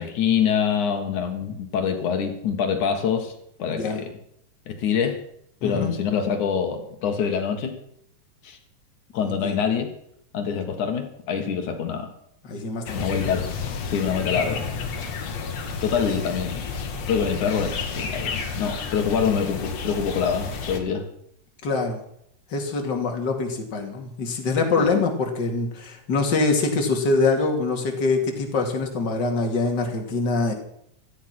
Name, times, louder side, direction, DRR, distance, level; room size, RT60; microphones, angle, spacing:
voice 1, 0.0-3.3 3.6-4.1 4.7-5.2 5.6-7.8 8.4-8.6 9.1-9.9 10.3-12.1 12.9-13.5 13.9-14.6 15.8-16.7 17.1-21.1 24.8-24.9, left 7 dB, 80° left, 5 dB, 3.1 m, -25 dB
voice 2, 3.7-4.0 5.6-6.0 9.2-9.5 12.4-13.2 21.6-22.0 22.5-30.5, left 3 dB, 35° left, 2 dB, 3.0 m, -24 dB
sound 1, 12.9-20.8, left 5 dB, 60° left, 2.9 m, -31 dB
17.0 x 13.5 x 6.1 m, 0.72 s
omnidirectional pair, 3.4 m